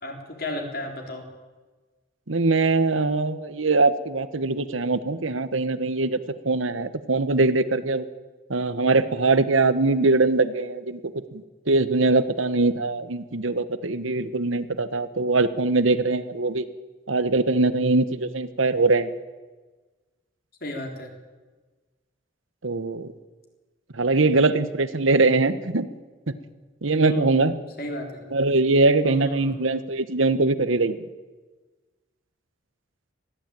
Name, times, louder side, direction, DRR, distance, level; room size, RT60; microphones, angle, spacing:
voice 1, 0.0-1.3 20.6-21.1 27.0-27.4 27.8-28.2 29.0-29.6, left 1 dB, 50° left, 2 dB, 4.0 m, -33 dB
voice 2, 2.3-8.1 8.5-11.0 11.3-16.7 17.1-19.1 22.6-23.1 23.9-25.9 26.3-26.4 26.8-27.6 28.3-31.1, right 3 dB, 85° right, 13 dB, 1.2 m, -22 dB
20.0 x 14.5 x 9.0 m, 1.3 s
head